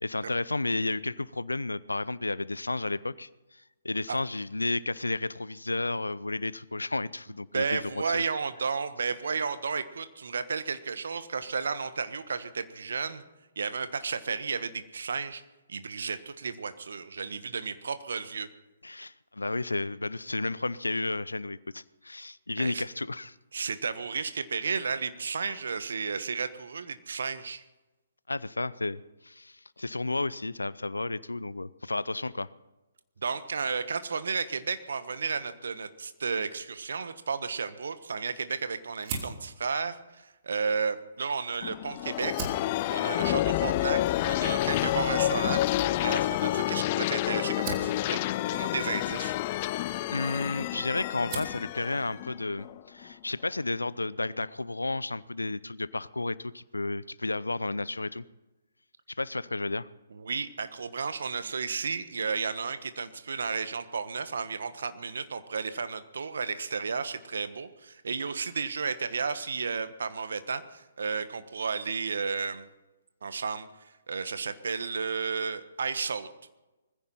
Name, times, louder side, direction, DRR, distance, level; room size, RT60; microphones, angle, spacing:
voice 1, 0.0-8.2 17.2-17.3 18.8-23.3 25.4-25.6 28.3-32.5 50.1-58.2 59.1-59.9, left 2 dB, 85° left, 19 dB, 0.6 m, -32 dB
voice 2, 7.5-13.2 13.6-15.4 15.7-18.5 22.6-22.8 23.5-27.6 33.2-42.4 42.9-48.2 48.5-49.3 60.1-72.7 73.2-76.3, right 5 dB, 65° right, 12 dB, 1.3 m, -33 dB
Fire, 39.0-41.6 42.1-50.7 51.0-51.7, right 4 dB, 35° right, 3.1 m, -43 dB
sound 1, 41.6-53.1, left 15 dB, 35° left, 0.5 m, -29 dB
20.5 x 15.5 x 4.3 m, 1.1 s
figure-of-eight pair, 130°, 0 cm